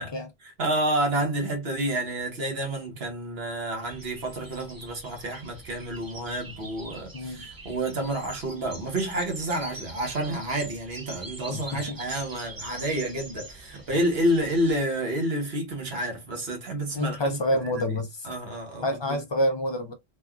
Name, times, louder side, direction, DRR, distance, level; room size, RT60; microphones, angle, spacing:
voice 1, 0.4-17.8 18.2-19.2, right 1 dB, 70° right, 1.3 m, -29 dB
sound 1, 3.8-14.8, right 2 dB, 25° right, 0.5 m, -44 dB
voice 2, 7.1-7.5 11.5-12.0 16.9-18.3 18.8-19.9, left 1 dB, 50° left, 0.3 m, -28 dB
3.4 x 2.3 x 2.3 m
omnidirectional pair, 1.1 m